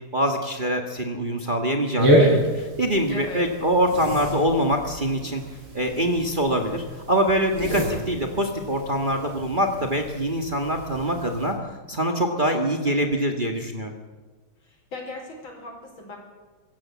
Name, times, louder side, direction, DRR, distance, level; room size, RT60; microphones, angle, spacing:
voice 1, 0.1-5.4 5.7-11.6 11.9-13.9, equal, 25° right, 3 dB, 1.7 m, -24 dB
sound 1, 2.0-11.5, right 1 dB, 90° right, 6.3 m, -28 dB
voice 2, 3.1-3.5 12.3-12.4 12.8-13.1 14.6-16.2, left 2 dB, 70° left, 2 dB, 5.3 m, -38 dB
25.0 x 14.5 x 7.3 m, 1.3 s
omnidirectional pair, 2.3 m